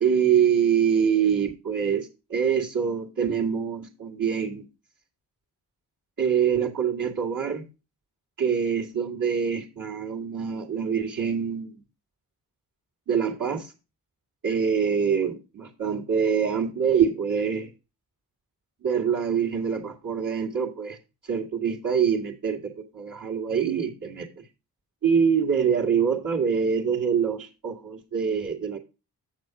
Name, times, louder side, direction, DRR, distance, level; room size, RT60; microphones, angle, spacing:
voice 1, 0.0-4.7 6.2-7.7 8.4-11.8 13.1-13.7 14.4-17.7 18.8-21.0 21.2-24.4 25.0-28.8, right 7 dB, 55° right, 2.1 m, -25 dB
8.1 x 6.5 x 4.8 m
cardioid pair, 60°, 41 cm